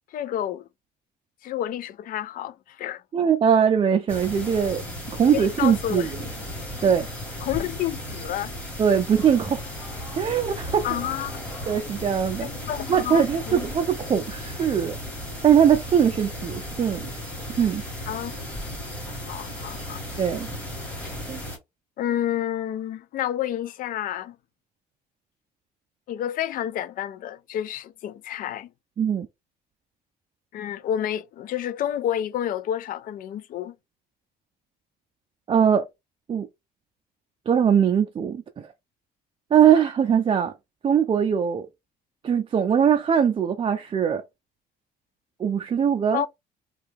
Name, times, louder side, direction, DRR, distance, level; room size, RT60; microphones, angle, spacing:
voice 1, 0.1-0.7 1.4-3.0 5.3-6.1 7.4-8.5 10.8-11.4 12.4-13.7 18.1-18.4 19.3-20.1 22.0-24.4 26.1-28.7 30.5-33.7 46.1-46.3, left 11 dB, 55° left, 0.4 m, -29 dB
voice 2, 3.1-4.8 5.1-6.1 6.8-7.1 8.8-9.6 10.2-10.8 11.7-12.5 12.9-15.0 15.4-17.0 17.6-17.8 20.2-20.5 21.3-21.4 29.0-29.3 35.5-35.9 36.3-36.5 37.5-38.7 39.5-40.5 40.8-41.7 42.2-44.2 45.4-46.2, right 8 dB, 30° right, 0.4 m, -21 dB
sound 1, 4.1-21.6, left 1 dB, 10° left, 1.5 m, -35 dB
2.8 x 2.3 x 3.4 m
cardioid pair, 110°, 17 cm